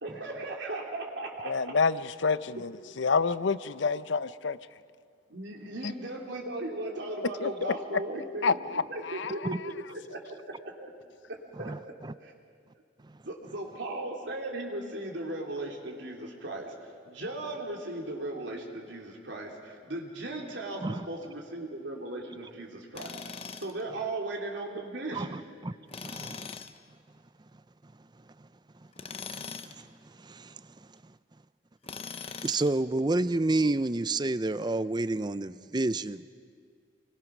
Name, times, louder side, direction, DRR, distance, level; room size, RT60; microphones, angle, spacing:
voice 1, 0.0-1.7 5.3-8.6 8.9-10.9 11.6-11.9 12.2-12.3 13.2-16.7 17.0-23.1 23.6-25.4, right 2 dB, 75° right, -1 dB, 3.1 m, -37 dB
voice 2, 1.5-2.7 3.0-4.6 7.4-7.7 8.4-8.8 9.2-9.3, left 4 dB, 80° left, 15 dB, 0.6 m, -27 dB
voice 3, 11.6-12.1 20.8-21.1 25.1-26.6 29.3-29.9 30.2-30.6 32.4-36.2, right 2 dB, 25° right, 15 dB, 0.5 m, -30 dB
Tools, 22.9-23.8 25.9-26.8 28.9-29.8 31.8-32.8, left 5 dB, 30° left, 0.8 m, -41 dB
28.0 x 21.5 x 6.1 m, 2.1 s
head